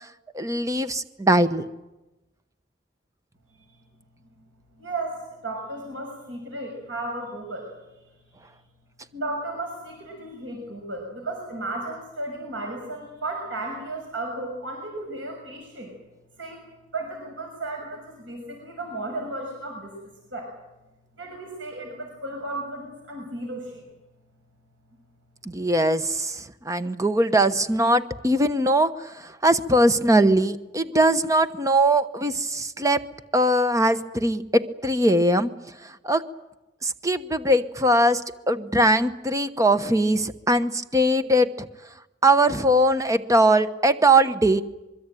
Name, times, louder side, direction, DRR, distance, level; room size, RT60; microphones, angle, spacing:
voice 1, 0.3-1.7 25.5-33.0 33.3-35.5 36.0-36.2 36.8-38.2 38.5-41.7 42.2-44.6, right 1 dB, 15° right, 11 dB, 1.0 m, -21 dB
voice 2, 4.8-7.7 9.1-15.9 16.4-16.6 16.9-19.9 20.3-20.5 21.2-23.9, right 2 dB, 85° right, 1 dB, 6.3 m, -34 dB
25.0 x 23.0 x 9.1 m, 1.0 s
head